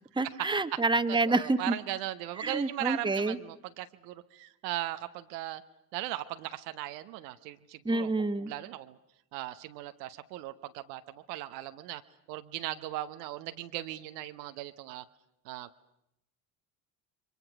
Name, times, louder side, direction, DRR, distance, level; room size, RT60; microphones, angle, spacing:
voice 1, 0.1-1.7 2.4-3.4 7.8-8.5, right 3 dB, 10° right, 10 dB, 1.2 m, -28 dB
voice 2, 1.3-5.6 5.9-8.1 8.4-9.0 9.3-12.0 12.3-15.0 15.4-15.7, right 14 dB, 70° right, 10 dB, 1.1 m, -38 dB
29.5 x 23.5 x 6.0 m, 0.81 s
hypercardioid pair, 55°, 50 cm